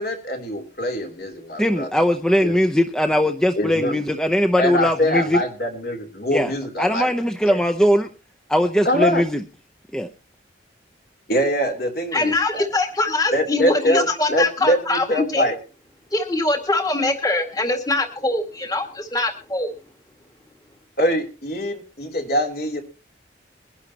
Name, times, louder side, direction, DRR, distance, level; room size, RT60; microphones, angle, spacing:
voice 1, 0.0-1.9 2.4-2.6 3.6-3.9 4.6-7.1 7.5-7.6 8.8-9.2 11.3-12.7 13.3-15.5 21.0-22.8, equal, 55° left, 3 dB, 3.3 m, -23 dB
voice 2, 1.6-5.4 6.3-8.1 8.5-9.4 9.9-10.1, equal, 5° left, 4 dB, 0.7 m, -20 dB
voice 3, 12.1-15.1 15.3-15.5 16.1-19.7, left 2 dB, 20° left, 4 dB, 2.0 m, -22 dB
22.5 x 11.5 x 2.9 m, 0.34 s
head